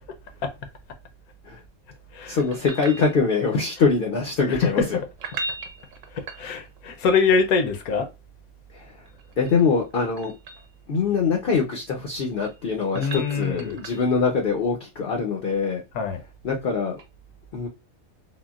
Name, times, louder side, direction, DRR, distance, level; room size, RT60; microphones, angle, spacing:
voice 1, 2.3-5.0 8.7-9.0 9.4-10.3 10.9-15.8 16.4-17.0 17.5-17.7, left 5 dB, 60° left, 0.6 m, -23 dB
sound 1, 2.4-3.6 5.1-6.9 9.1-10.7 12.1-14.2 17.0-17.1, right 3 dB, 70° right, 1.0 m, -38 dB
voice 2, 4.5-5.1 6.1-8.1 12.9-13.8 15.9-16.2, left 5 dB, 85° left, 1.1 m, -24 dB
3.6 x 2.1 x 2.3 m
omnidirectional pair, 1.5 m